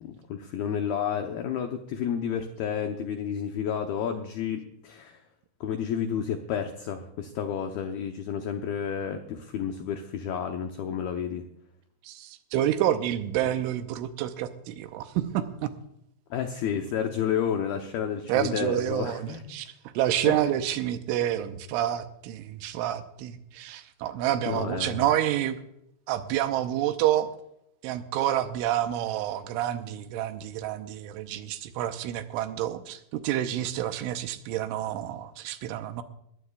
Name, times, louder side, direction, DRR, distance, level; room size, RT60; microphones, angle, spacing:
voice 1, 0.0-5.2 5.6-11.4 16.3-19.6 20.2-20.4 24.5-25.0, left 8 dB, 85° left, 5 dB, 2.1 m, -31 dB
voice 2, 12.0-15.7 18.3-25.6 26.1-27.3 27.8-36.0, right 12 dB, 85° right, 9 dB, 3.2 m, -28 dB
21.5 x 15.5 x 2.4 m, 0.77 s
omnidirectional pair, 5.7 m